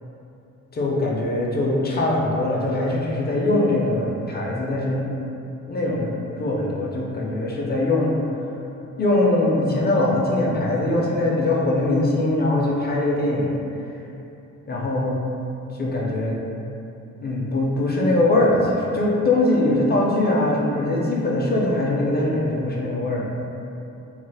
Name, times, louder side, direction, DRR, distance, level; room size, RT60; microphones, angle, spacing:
voice 1, 0.7-5.1 5.7-8.2 9.0-13.6 14.7-15.2 15.7-16.4 17.2-23.2, left 2 dB, 35° left, -3 dB, 0.5 m, -22 dB
3.1 x 2.0 x 3.3 m, 2.8 s
cardioid pair, 90°, 30 cm